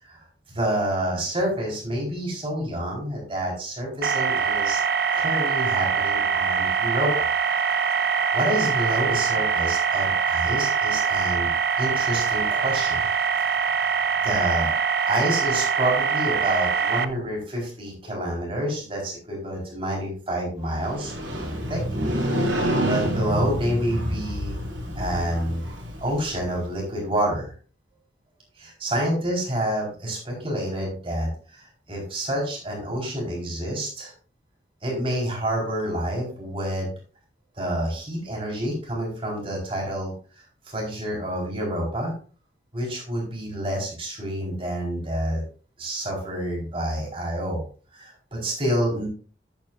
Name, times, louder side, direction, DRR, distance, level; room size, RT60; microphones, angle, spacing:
voice 1, 0.0-4.8 5.1-7.3 8.3-11.5 11.8-13.0 13.8-14.7 15.1-21.1 21.7-21.8 22.8-24.6 25.0-25.6 26.0-27.5 28.6-34.1 34.8-36.9 37.6-42.1 42.7-45.4 45.8-47.6 47.9-49.1, right 1 dB, 30° right, -2 dB, 4.4 m, -28 dB
sound 1, 4.0-17.1, right 6 dB, 60° right, 0.6 m, -23 dB
Motorcycle, 20.7-26.7, equal, 90° right, 3.2 m, -28 dB
10.5 x 9.0 x 2.5 m, 0.38 s
head